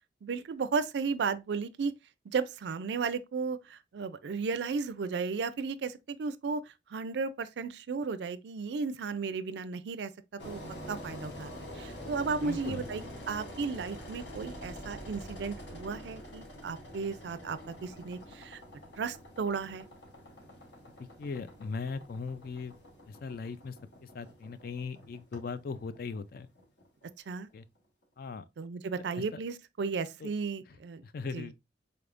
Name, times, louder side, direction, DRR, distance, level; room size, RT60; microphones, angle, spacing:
voice 1, 0.2-1.9 2.3-6.6 6.9-10.1 10.4-10.6 10.9-18.6 19.0-19.9 27.3-27.5 28.6-31.0 31.3-31.5, right 5 dB, 65° right, 0.4 m, -34 dB
Engine, 10.4-27.3, equal, 75° left, 1.1 m, -46 dB
voice 2, 12.4-12.9 21.2-22.7 23.1-23.7 24.0-26.5 27.5-27.7 28.2-28.4 29.2-29.4 30.2-30.3 31.0-31.5, left 4 dB, 55° left, 0.4 m, -39 dB
4.0 x 3.4 x 2.4 m
head